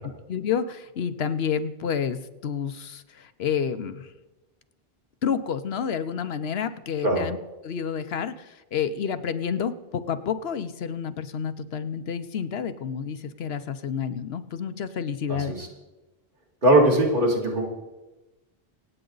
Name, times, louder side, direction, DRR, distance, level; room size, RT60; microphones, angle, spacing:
voice 1, 0.3-4.1 5.2-7.4 7.6-15.6, left 7 dB, 80° left, 11 dB, 1.0 m, -29 dB
voice 2, 15.3-15.7 16.6-17.7, right 1 dB, 55° right, -1 dB, 2.6 m, -20 dB
25.5 x 8.8 x 4.0 m, 1.1 s
omnidirectional pair, 1.0 m